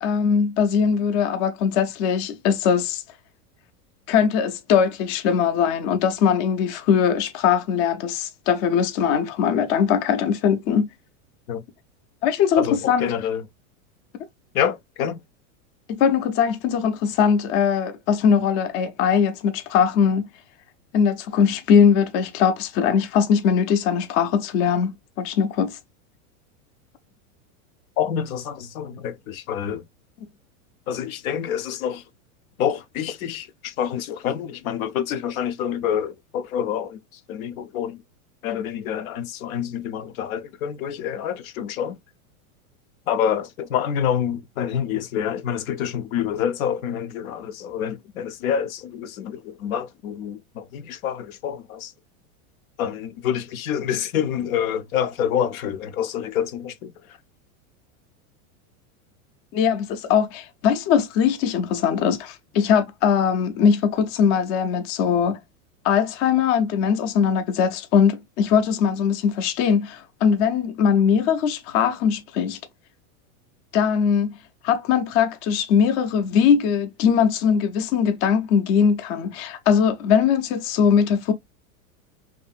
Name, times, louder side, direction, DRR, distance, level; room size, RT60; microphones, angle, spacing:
voice 1, 0.0-3.0 4.1-10.9 12.2-13.1 15.9-20.3 20.9-25.8 30.2-30.3 59.5-65.4 65.8-72.6 73.7-74.3 74.6-81.3, left 7 dB, 35° left, 0.5 m, -21 dB
voice 2, 12.6-13.4 14.5-15.2 28.0-29.8 30.9-32.0 32.6-37.0 37.3-38.0 38.4-42.0 43.1-51.9 52.8-56.9, left 9 dB, 75° left, 0.7 m, -27 dB
2.8 x 2.5 x 2.3 m
supercardioid pair, 135°, 43 cm